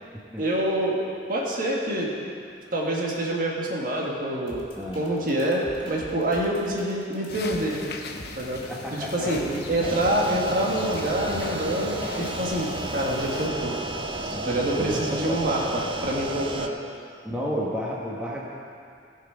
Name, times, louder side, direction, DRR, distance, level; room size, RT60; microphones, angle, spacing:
voice 1, 0.4-1.0 1.3-2.1 2.7-4.6 5.0-5.6 5.9-7.8 8.4-8.6 8.9-9.4 9.7-13.8 14.3-16.7, right 1 dB, 55° right, -3 dB, 1.7 m, -26 dB
sound 1, 4.5-11.8, equal, 30° left, 2.1 m, -44 dB
voice 2, 4.8-5.1 8.7-10.0 14.3-15.0 15.3-15.5 17.2-18.5, equal, 10° right, -5 dB, 1.3 m, -32 dB
sound 2, 7.3-13.5, left 3 dB, 65° left, 0.8 m, -38 dB
sound 3, 9.8-16.7, right 2 dB, 30° right, 0.6 m, -32 dB
16.5 x 6.0 x 5.0 m, 2.3 s
head